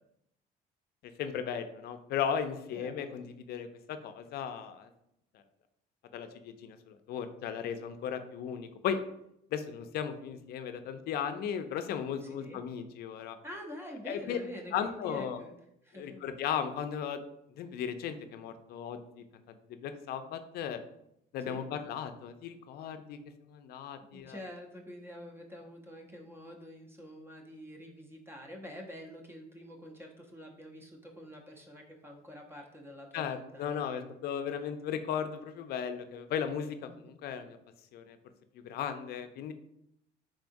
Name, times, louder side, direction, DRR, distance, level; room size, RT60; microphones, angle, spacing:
voice 1, 1.2-4.9 6.1-9.0 9.5-13.4 14.1-14.4 14.7-15.4 15.9-17.2 17.6-20.8 21.3-23.2 23.5-24.4 33.1-37.6 37.9-38.2 38.6-39.5, left 8 dB, 65° left, 9 dB, 0.4 m, -36 dB
voice 2, 2.7-3.2 12.2-12.6 13.4-15.5 15.8-16.2 21.4-21.7 24.0-34.1 34.5-34.6 36.8-37.1, equal, 15° right, 1 dB, 0.6 m, -47 dB
3.7 x 3.5 x 2.6 m, 0.78 s
cardioid pair, 110°, 17 cm